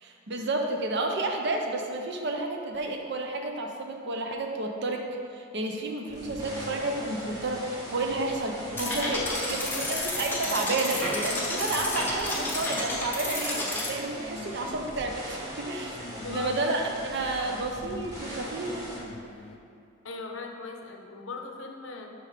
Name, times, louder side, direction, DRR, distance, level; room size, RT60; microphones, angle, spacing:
voice 1, 0.0-5.1 5.3-9.2 9.5-9.6 10.1-16.0 16.3-18.9, right 2 dB, 55° right, 3 dB, 0.7 m, -31 dB
sound 1, 6.1-19.6, left 2 dB, 30° left, 0.4 m, -45 dB
sound 2, 6.1-19.0, equal, 15° right, 1.4 m, -41 dB
sound 3, 8.8-13.9, left 1 dB, 10° left, 0.8 m, -31 dB
voice 2, 9.1-10.0 16.2-16.6 20.0-22.1, left 3 dB, 65° left, 2 dB, 0.7 m, -38 dB
5.7 x 5.3 x 4.8 m, 2.6 s
head